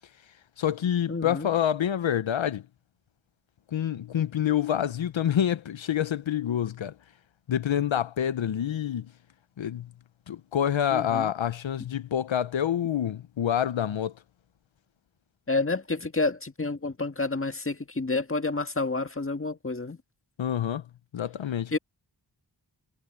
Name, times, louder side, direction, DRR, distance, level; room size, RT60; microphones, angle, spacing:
voice 1, 0.6-2.6 3.7-6.9 7.5-9.1 9.6-9.9 10.3-14.1 20.4-20.8 21.1-21.7, left 10 dB, 80° left, 0.7 m, -27 dB
voice 2, 1.1-1.5 10.9-11.3 15.5-20.0 21.7-21.8, left 3 dB, 30° left, 1.7 m, -29 dB
wide cardioid pair, 50°, 45 cm